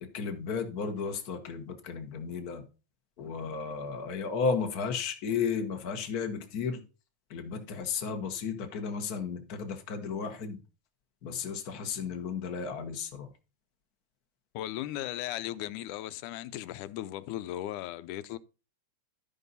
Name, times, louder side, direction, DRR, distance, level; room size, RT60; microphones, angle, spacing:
voice 1, 0.0-2.7 3.2-6.8 7.3-10.6 11.2-13.3, left 5 dB, 55° left, 1.0 m, -34 dB
voice 2, 14.5-18.4, left 14 dB, 85° left, 2.1 m, -37 dB
12.5 x 5.4 x 4.0 m
omnidirectional pair, 3.5 m